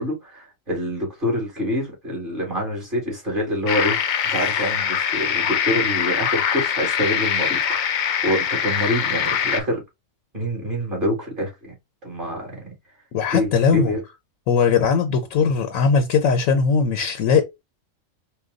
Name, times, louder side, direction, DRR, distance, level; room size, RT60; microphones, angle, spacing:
voice 1, 0.0-9.8 10.3-11.7 12.0-12.7 13.3-14.0, equal, 40° right, 2.4 m, -26 dB
sound 1, 3.7-9.6, left 8 dB, 60° left, 0.5 m, -23 dB
voice 2, 13.1-13.9 14.5-17.4, left 5 dB, 80° left, 1.1 m, -19 dB
4.6 x 2.2 x 3.8 m
omnidirectional pair, 1.4 m